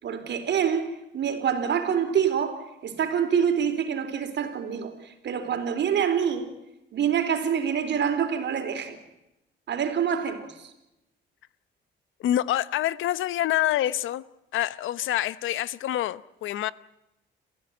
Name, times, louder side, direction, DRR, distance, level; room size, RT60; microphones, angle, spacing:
voice 1, 0.0-6.5 6.9-9.0 9.7-10.7, right 8 dB, 65° right, 3.9 m, -26 dB
voice 2, 12.2-14.2 14.5-16.7, left 13 dB, 80° left, 0.9 m, -26 dB
28.5 x 15.0 x 9.4 m
cardioid pair, 90°, 20 cm